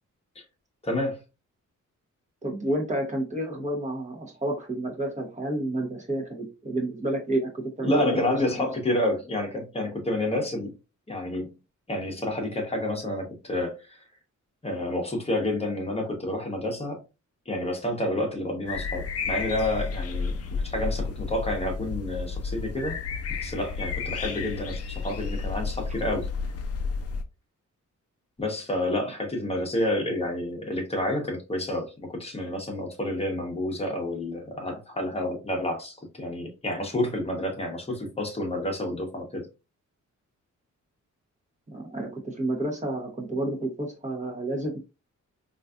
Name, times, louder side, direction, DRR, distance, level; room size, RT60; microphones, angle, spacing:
voice 1, 0.8-1.2 7.8-10.7 11.1-11.5 11.9-13.8 14.6-17.0 17.5-23.0 23.4-26.3 28.4-39.5, left 1 dB, 20° left, 0.9 m, -29 dB
voice 2, 2.4-8.1 8.6-8.7 41.7-44.8, right 1 dB, 25° right, 0.9 m, -30 dB
sound 1, 18.7-27.2, left 5 dB, 50° left, 0.5 m, -32 dB
3.9 x 2.6 x 2.3 m
wide cardioid pair, 145°, 31 cm